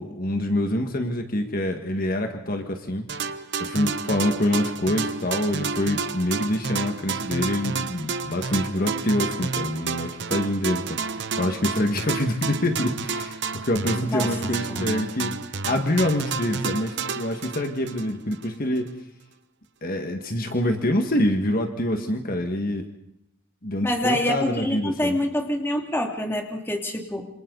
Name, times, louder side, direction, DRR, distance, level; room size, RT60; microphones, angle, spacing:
voice 1, 0.0-3.4 3.6-15.3 15.7-18.9 19.8-22.9 23.6-25.2, left 1 dB, 45° left, 5 dB, 1.9 m, -26 dB
sound 1, 3.1-18.5, right 5 dB, 55° right, 1.0 m, -30 dB
voice 2, 14.1-14.9 23.8-27.3, left 1 dB, 10° left, 2 dB, 2.6 m, -26 dB
27.5 x 27.0 x 4.1 m, 0.81 s
head